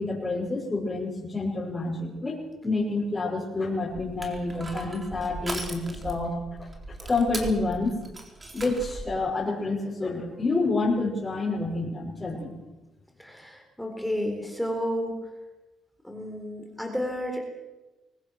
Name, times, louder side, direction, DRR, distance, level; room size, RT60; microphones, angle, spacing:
voice 1, 0.0-6.4 7.1-8.0 8.5-12.5, left 3 dB, 20° left, -6 dB, 6.2 m, -28 dB
Crushing, 3.9-9.1, right 2 dB, 25° right, 4.0 m, -38 dB
voice 2, 13.2-15.2 16.0-17.5, equal, ahead, 3 dB, 4.3 m, -31 dB
23.5 x 19.5 x 6.4 m, 1.1 s
cardioid pair, 90°, 0 cm